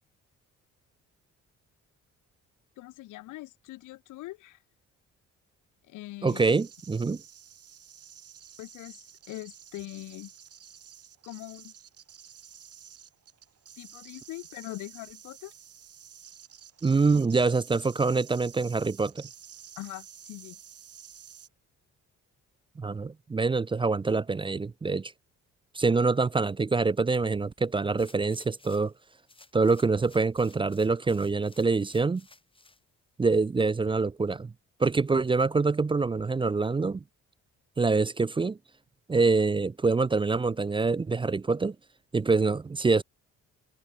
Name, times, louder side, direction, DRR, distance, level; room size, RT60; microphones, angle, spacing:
voice 1, 2.8-4.6 5.9-6.6 8.6-10.3 11.2-11.7 13.8-15.5 19.8-20.6, left 18 dB, 85° left, 0.7 m, -42 dB
voice 2, 6.2-7.2 16.8-19.2 22.8-25.1 25.7-28.9 29.5-32.2 33.2-34.5 34.8-37.0 37.8-38.6 39.1-41.8 42.1-43.0, right 4 dB, 15° right, 0.4 m, -25 dB
sound 1, 6.3-21.5, right 9 dB, 50° right, 2.0 m, -51 dB
sound 2, 28.0-29.0 29.3-32.8 33.3-33.4, left 2 dB, 15° left, 5.2 m, -57 dB
cardioid pair, 90°, 30 cm